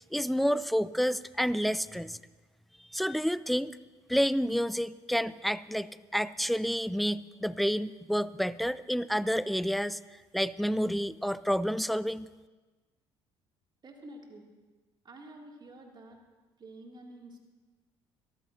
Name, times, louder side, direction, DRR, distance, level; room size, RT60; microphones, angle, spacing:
voice 1, 0.1-2.2 2.9-3.8 4.1-10.0 10.3-12.3, equal, ahead, 18 dB, 0.4 m, -29 dB
voice 2, 13.8-14.5 15.0-16.2 16.6-17.4, right 1 dB, 30° right, 1 dB, 2.7 m, -49 dB
23.5 x 13.5 x 2.8 m, 1.2 s
figure-of-eight pair, 50°, 14 cm